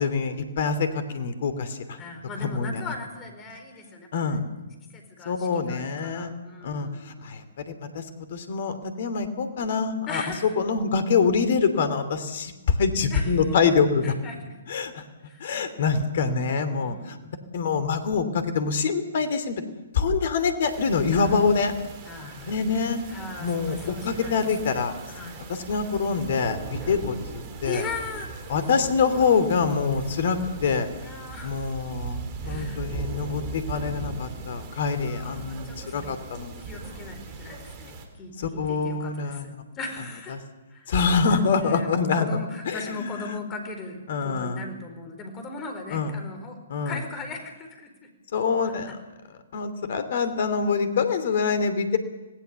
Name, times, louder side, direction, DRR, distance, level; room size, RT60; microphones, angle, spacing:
voice 1, 0.0-2.0 2.4-2.8 4.1-4.4 5.2-6.3 6.6-6.9 7.2-8.0 8.3-10.2 10.6-14.1 14.7-15.0 15.4-17.2 17.5-19.6 19.9-21.7 22.4-23.0 23.4-24.9 25.5-27.8 28.5-30.9 31.4-36.6 38.6-39.5 40.3-40.4 40.9-42.4 42.7-43.1 44.1-44.6 45.9-46.1 46.7-47.0 48.3-48.9 49.5-52.0, left 5 dB, 50° left, 11 dB, 2.8 m, -25 dB
voice 2, 2.0-4.6 4.9-7.3 10.1-10.5 13.1-13.6 14.0-14.5 15.2-15.5 16.8-17.4 21.1-21.4 22.0-24.8 25.1-25.4 26.8-26.9 27.6-29.3 31.0-31.8 32.4-33.0 35.0-36.1 36.6-40.4 40.7-40.9 41.3-46.6 46.8-48.1 48.6-48.9, left 3 dB, 20° left, 5 dB, 4.6 m, -39 dB
sound 1, 20.6-38.0, right 4 dB, 30° right, 3.6 m, -39 dB
26.0 x 18.0 x 7.0 m, 1.1 s
figure-of-eight pair, 130°, 0 cm